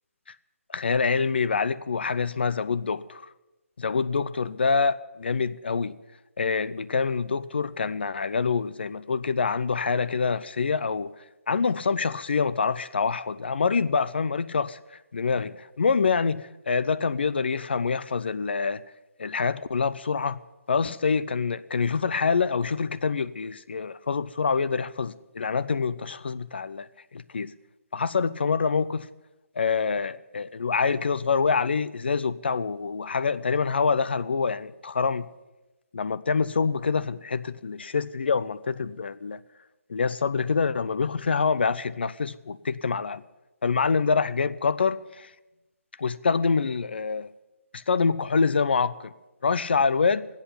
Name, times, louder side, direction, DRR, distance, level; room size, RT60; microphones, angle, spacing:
voice 1, 0.7-3.2 3.8-6.0 6.4-11.1 11.5-14.8 15.1-18.8 19.2-20.4 20.7-27.5 27.9-29.1 29.6-35.3 35.9-39.4 39.9-43.2 43.6-45.3 46.0-47.3 47.7-49.1 49.4-50.3, left 5 dB, 45° left, 16 dB, 0.5 m, -26 dB
14.0 x 8.2 x 10.0 m, 1.0 s
hypercardioid pair, 175°, 8 cm